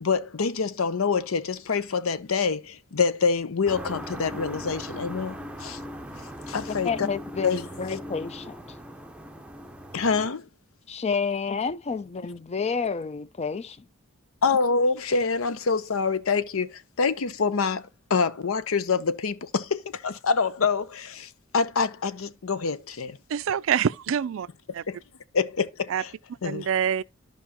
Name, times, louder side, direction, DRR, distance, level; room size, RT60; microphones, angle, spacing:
voice 1, 0.0-5.8 6.5-7.1 7.4-7.6 9.9-10.5 14.4-23.2 24.9-25.0 25.3-26.1 26.4-26.7, left 5 dB, 85° left, 0.7 m, -26 dB
sound 1, 3.7-10.3, equal, 5° right, 0.7 m, -39 dB
voice 2, 6.7-8.6 10.9-13.9, left 5 dB, 30° left, 0.4 m, -30 dB
voice 3, 23.3-24.5 24.7-24.8 25.9-26.0 26.4-27.0, right 8 dB, 65° right, 0.4 m, -25 dB
14.0 x 5.3 x 2.9 m
head